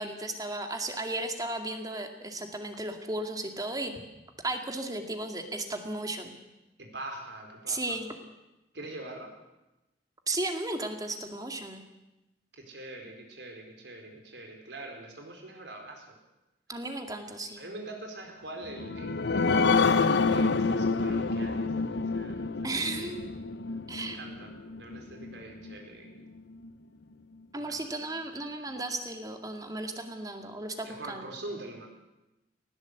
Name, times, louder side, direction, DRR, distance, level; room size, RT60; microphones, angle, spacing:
voice 1, 0.0-3.9 4.4-6.4 7.7-8.1 10.3-11.8 16.7-17.6 22.6-23.2 23.9-24.2 27.5-31.3, right 2 dB, 20° right, 5 dB, 2.2 m, -35 dB
voice 2, 6.8-8.0 8.7-9.3 12.5-16.2 17.6-23.2 24.0-24.5 24.8-26.3 27.5-27.8 30.8-31.9, right 2 dB, 70° right, 2 dB, 4.4 m, -43 dB
sound 1, 18.6-25.7 26.2-26.3 26.6-26.7, left 4 dB, 70° left, 0.8 m, -28 dB
19.5 x 17.0 x 8.3 m, 0.97 s
head